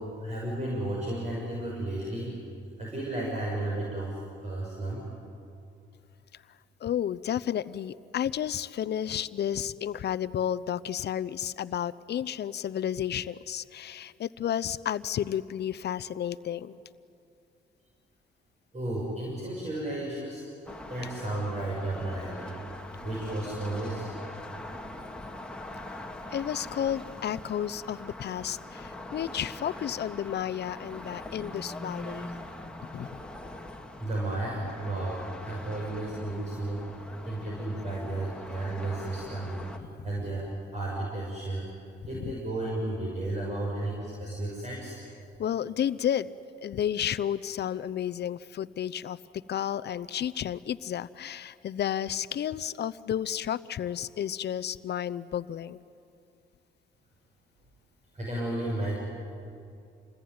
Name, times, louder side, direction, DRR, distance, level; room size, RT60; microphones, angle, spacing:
voice 1, 0.0-2.4 2.8-4.2 4.4-5.0 18.7-20.4 20.9-22.5 23.0-24.1 34.0-36.8 37.2-39.6 40.0-41.7 42.1-45.0 58.1-59.0, right 1 dB, 35° right, -3 dB, 6.6 m, -33 dB
voice 2, 6.8-16.8 26.3-32.3 32.9-33.1 42.1-42.3 45.4-46.3 46.6-49.2 49.5-55.8, left 10 dB, 60° left, 14 dB, 0.7 m, -32 dB
sound 1, 20.7-39.8, left 1 dB, 5° left, 2.2 m, -42 dB
28.0 x 21.0 x 9.6 m, 2.6 s
cardioid pair, 90°, 20 cm